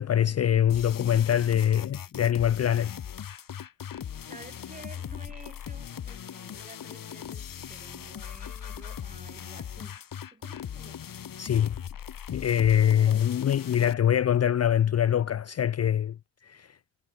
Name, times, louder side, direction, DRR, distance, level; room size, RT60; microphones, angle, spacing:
voice 1, 0.0-2.9 11.4-11.7 12.3-16.1 16.5-16.7, left 10 dB, 40° left, 0.6 m, -24 dB
sound 1, 0.7-13.9, left 9 dB, 55° left, 2.6 m, -39 dB
voice 2, 4.3-10.0 10.3-11.0 12.8-13.3, right 2 dB, 20° right, 7.2 m, -51 dB
cardioid pair, 75°, 41 cm